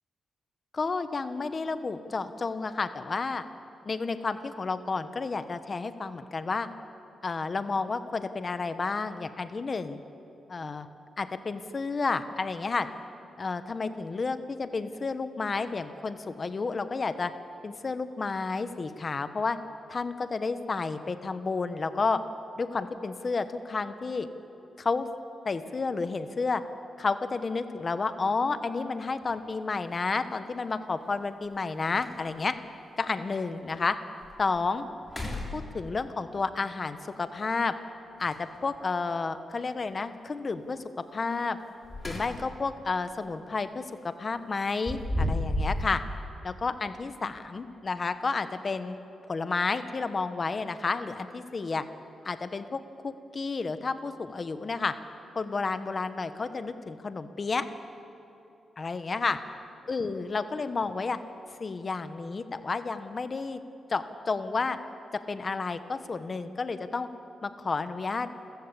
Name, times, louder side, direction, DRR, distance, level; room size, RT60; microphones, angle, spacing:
voice 1, 0.7-3.4 3.8-6.7 7.2-10.0 10.5-10.9 11.2-12.9 13.4-17.3 17.6-19.6 19.9-22.2 22.6-24.3 24.8-25.1 25.4-26.6 27.0-32.5 33.0-34.0 34.4-34.9 35.5-37.7 38.2-40.8 41.1-41.6 42.0-46.0 46.4-49.0 49.3-51.8 52.2-54.9 55.3-57.6 58.8-59.4 59.9-61.2 61.6-63.6 63.9-64.8 65.1-67.1 67.4-68.3, left 4 dB, 30° left, 10 dB, 1.1 m, -31 dB
sound 1, 29.2-29.3 31.1-31.2 31.6-31.7 31.9-32.5 33.1-33.2 33.7-33.8 34.2-34.6 35.0-36.1 38.2-38.8 41.6-42.7 43.0-43.3 44.5-45.9, left 1 dB, 15° left, 3.6 m, -33 dB
29.5 x 15.0 x 8.4 m, 2.8 s
wide cardioid pair, 150°, 0 cm